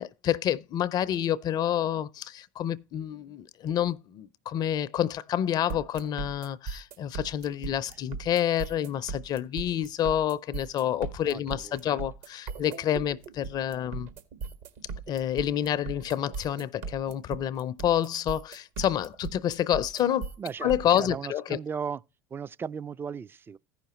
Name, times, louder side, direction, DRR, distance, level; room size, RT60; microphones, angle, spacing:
voice 1, 0.0-14.1 15.1-20.3 20.6-21.6, left 10 dB, 45° left, 0.5 m, -28 dB
sound 1, 5.7-21.0, right 5 dB, 70° right, 1.6 m, -38 dB
voice 2, 11.3-12.0 20.4-22.0 22.3-23.6, right 6 dB, 25° right, 0.4 m, -37 dB
14.5 x 5.7 x 3.0 m
hypercardioid pair, 80°, 10 cm